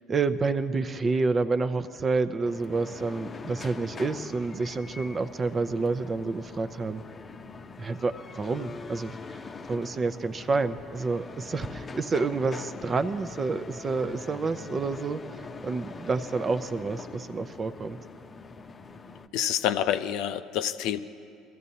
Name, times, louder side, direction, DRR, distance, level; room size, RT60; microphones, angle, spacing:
voice 1, 0.1-7.0 7.8-9.4 9.7-15.2 15.6-18.0, right 4 dB, 35° right, 11 dB, 0.7 m, -29 dB
sound 1, 2.4-19.3, left 4 dB, 30° left, 0.7 m, -43 dB
voice 2, 19.3-21.0, left 10 dB, 70° left, 10 dB, 0.5 m, -27 dB
22.5 x 13.5 x 2.8 m, 2.5 s
hypercardioid pair, 65°, 0 cm